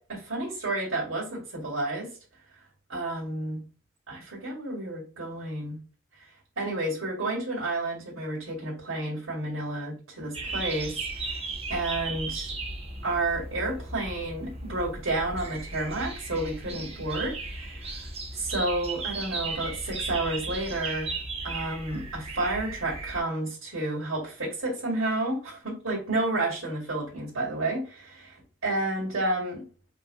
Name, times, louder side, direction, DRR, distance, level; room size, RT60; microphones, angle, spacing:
voice 1, 0.0-2.1 2.9-3.6 4.1-5.8 6.2-6.3 6.6-11.4 11.7-12.5 13.0-18.0 18.3-21.2 21.4-29.7, right 2 dB, 90° right, 2.4 m, -31 dB
sound 1, 10.3-23.2, right 3 dB, 30° right, 1.0 m, -36 dB
5.3 x 3.5 x 2.4 m
head